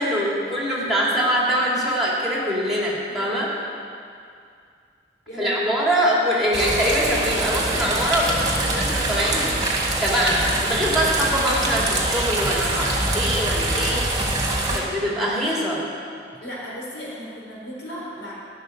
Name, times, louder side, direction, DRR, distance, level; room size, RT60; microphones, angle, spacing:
voice 1, 0.0-3.5 5.4-9.6 10.0-14.1 14.7-15.8, equal, ahead, -5 dB, 2.9 m, -23 dB
voice 2, 3.1-3.5 5.3-5.8 14.7-15.3 16.3-18.3, equal, 75° left, -5 dB, 4.4 m, -36 dB
sound 1, 6.5-14.8, right 2 dB, 20° right, 2.0 m, -24 dB
13.5 x 6.7 x 9.8 m, 2.3 s
head